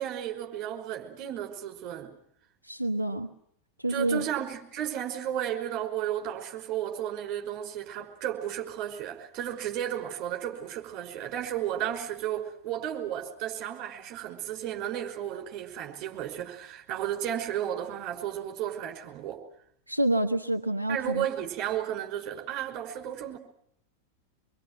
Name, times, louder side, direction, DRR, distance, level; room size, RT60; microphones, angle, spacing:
voice 1, 0.0-2.1 3.9-19.4 20.9-23.4, right 11 dB, 40° right, 5.5 m, -33 dB
voice 2, 2.6-3.3 3.8-4.3 19.9-21.2, right 1 dB, 85° right, 1.0 m, -28 dB
25.5 x 23.0 x 7.7 m
figure-of-eight pair, 90°, 0 cm